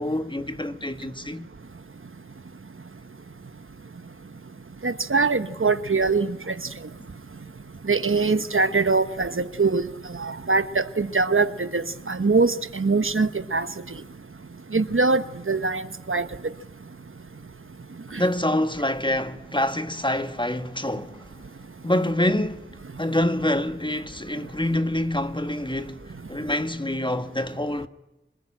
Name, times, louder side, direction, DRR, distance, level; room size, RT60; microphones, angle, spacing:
voice 1, 0.0-1.5 18.2-21.2 21.8-22.7 23.0-26.0 26.3-27.9, left 1 dB, 25° left, 1.5 m, -26 dB
voice 2, 4.8-6.6 7.9-9.8 10.2-13.7 14.7-15.8 16.1-16.3 18.1-18.2, right 4 dB, 85° right, 1.1 m, -23 dB
26.5 x 20.0 x 8.9 m
wide cardioid pair, 40°, 21 cm